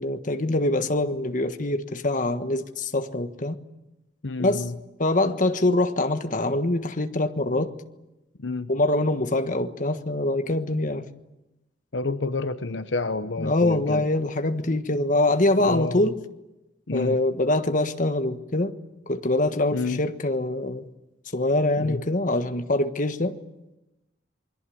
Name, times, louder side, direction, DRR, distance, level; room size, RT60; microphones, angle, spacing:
voice 1, 0.0-3.6 4.4-4.6 5.0-7.7 8.7-11.1 13.4-16.2 16.9-18.8 19.1-20.9 21.3-23.4, left 2 dB, 45° left, 1.5 m, -24 dB
voice 2, 4.2-4.7 8.4-8.7 11.9-14.0 15.6-16.1 16.9-17.2 19.7-20.0 21.8-22.0, left 3 dB, 75° left, 1.0 m, -29 dB
27.5 x 22.0 x 8.7 m
head